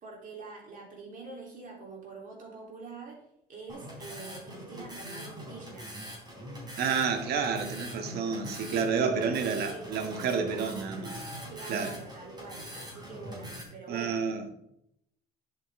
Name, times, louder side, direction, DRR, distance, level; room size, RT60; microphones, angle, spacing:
voice 1, 0.0-3.2 3.5-6.0 9.2-10.0 11.5-14.2, right 3 dB, 55° right, 3.4 m, -45 dB
sound 1, 3.7-13.6, equal, 25° right, 3.8 m, -42 dB
voice 2, 6.8-11.2 11.7-11.9 13.9-14.5, right 6 dB, 70° right, 1.3 m, -30 dB
10.5 x 7.9 x 3.6 m
cardioid pair, 110°, 17 cm